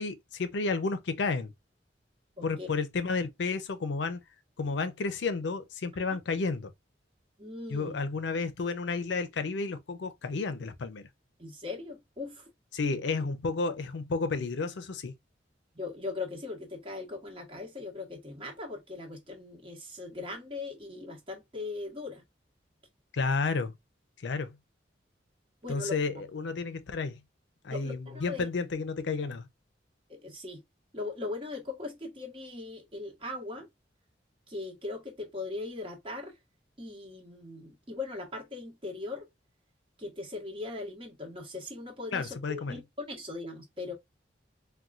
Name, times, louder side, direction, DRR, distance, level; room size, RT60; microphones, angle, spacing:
voice 1, 0.0-1.5 2.4-4.2 4.6-6.7 7.7-11.1 12.7-15.1 23.1-23.7 24.2-24.6 25.7-27.2 27.6-29.5 42.1-42.8, left 4 dB, 70° left, 0.5 m, -31 dB
voice 2, 2.4-2.7 7.4-7.9 11.4-12.5 15.7-22.2 25.6-26.0 27.7-28.5 30.1-30.6 30.9-33.7 34.5-36.4 36.8-39.3 40.0-43.9, left 3 dB, 30° right, 1.1 m, -39 dB
4.2 x 2.2 x 2.4 m
head